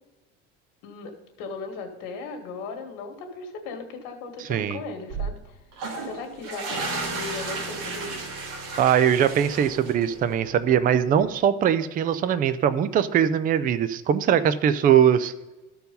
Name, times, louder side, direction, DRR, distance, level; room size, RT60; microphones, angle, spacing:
voice 1, 0.8-5.6 6.0-8.2, left 4 dB, 90° left, 4 dB, 1.9 m, -37 dB
sound 1, 5.1-5.6 6.1-6.2 6.7-11.4, right 4 dB, 50° right, 2.9 m, -39 dB
sound 2, 5.7-10.3, right 3 dB, 75° right, 2.2 m, -34 dB
voice 2, 8.8-15.3, right 9 dB, 25° right, 13 dB, 0.4 m, -21 dB
13.5 x 4.6 x 5.3 m, 1.1 s
cardioid pair, 150°, 33 cm